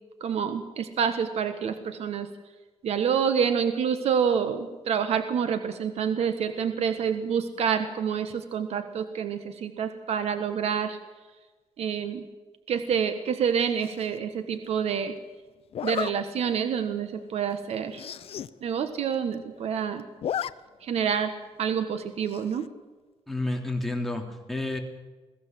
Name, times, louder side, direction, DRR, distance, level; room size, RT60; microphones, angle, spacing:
voice 1, 0.2-2.3 2.8-11.0 11.8-12.3 12.7-15.1 15.8-18.1 18.6-20.0 20.8-21.3 21.6-22.7, right 7 dB, 75° right, 9 dB, 1.4 m, -27 dB
Zipper (clothing), 13.8-14.2 15.7-16.1 16.7-16.9 17.2-17.3 17.5-17.6 17.9-18.5 18.9-19.0 19.1-19.7 20.0-20.5 20.8-20.9 22.3-22.7, left 9 dB, 65° left, 0.7 m, -33 dB
voice 2, 23.3-24.8, left 2 dB, ahead, 2 dB, 3.3 m, -30 dB
22.0 x 15.5 x 7.8 m, 1.3 s
cardioid pair, 120°, 11 cm